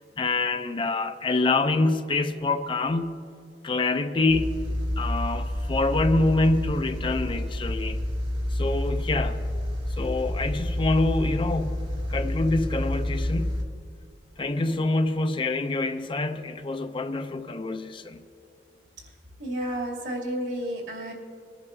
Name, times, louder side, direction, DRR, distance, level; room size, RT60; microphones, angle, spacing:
voice 1, 0.0-3.2 3.6-4.6 5.0-8.0 8.5-9.4 10.0-11.8 12.1-13.5 14.4-18.2, left 2 dB, 30° left, 0.4 m, -26 dB
sound 1, 4.3-13.6, left 1 dB, 70° right, 1.8 m, -29 dB
voice 2, 19.4-21.1, right 1 dB, 90° right, 2.6 m, -31 dB
22.0 x 11.0 x 2.6 m
head